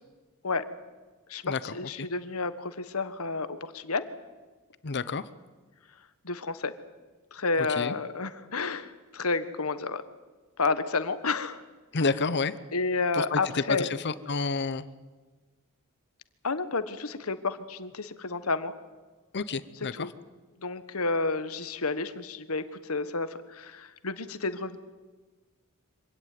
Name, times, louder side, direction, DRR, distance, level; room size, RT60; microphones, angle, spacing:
voice 1, 1.3-4.0 6.2-6.7 7.3-10.0 10.6-11.6 12.7-13.9 16.4-18.7 19.9-20.1 20.6-24.8, left 3 dB, 85° left, 12 dB, 1.4 m, -30 dB
voice 2, 4.8-5.3 7.6-7.9 11.9-12.5 13.1-14.9 19.3-20.1, left 4 dB, 55° left, 15 dB, 0.8 m, -29 dB
25.0 x 17.0 x 9.5 m, 1.3 s
head